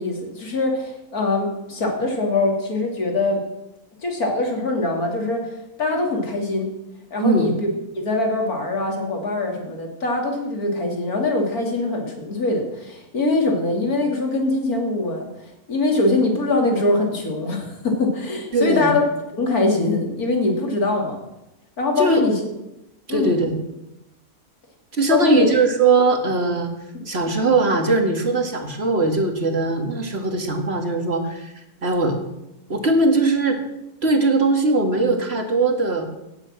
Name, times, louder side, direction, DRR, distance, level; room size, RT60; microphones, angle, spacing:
voice 1, 0.0-3.4 4.0-6.7 7.1-7.7 7.9-19.0 19.4-21.2 21.8-22.5 23.1-23.4 25.1-25.6 26.9-27.0, left 2 dB, 90° left, 2 dB, 3.3 m, -23 dB
voice 2, 18.5-18.9 22.0-22.2 23.1-23.6 24.9-26.7 27.1-32.2 32.7-33.6 34.0-36.1, right 3 dB, 45° right, 4 dB, 2.1 m, -20 dB
17.5 x 7.9 x 7.5 m, 0.91 s
omnidirectional pair, 1.5 m